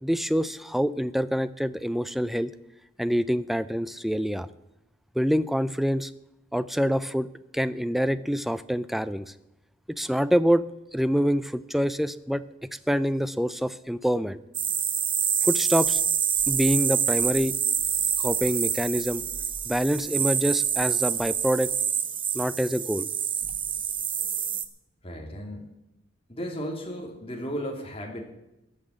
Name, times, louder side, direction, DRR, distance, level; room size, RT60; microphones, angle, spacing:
voice 1, 0.0-2.5 3.0-4.5 5.2-6.1 6.5-7.3 7.5-9.3 10.0-10.6 10.9-14.4 15.4-16.0 16.5-17.5 18.2-19.2 19.7-21.7 22.3-23.1, equal, ahead, 14 dB, 0.4 m, -26 dB
sound 1, 14.5-24.6, right 8 dB, 25° right, 0.8 m, -27 dB
voice 2, 25.0-25.6 26.3-28.2, equal, 30° left, 1 dB, 2.9 m, -34 dB
15.0 x 6.0 x 9.7 m, 0.90 s
head